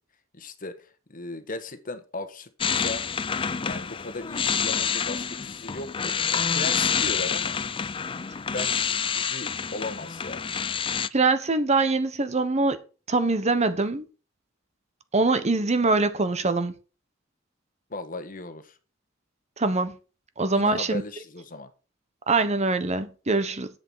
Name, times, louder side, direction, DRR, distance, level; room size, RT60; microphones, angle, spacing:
voice 1, 0.3-3.1 3.6-6.2 6.5-7.6 8.4-10.4 17.9-18.8 20.5-21.7, left 2 dB, 45° left, 1.4 m, -37 dB
sound 1, 2.6-11.1, left 6 dB, 25° left, 0.5 m, -28 dB
voice 2, 11.1-12.8 13.1-14.0 15.1-16.7 19.6-19.9 20.4-21.0 22.3-23.7, right 3 dB, 35° right, 1.1 m, -23 dB
10.5 x 8.1 x 5.7 m
head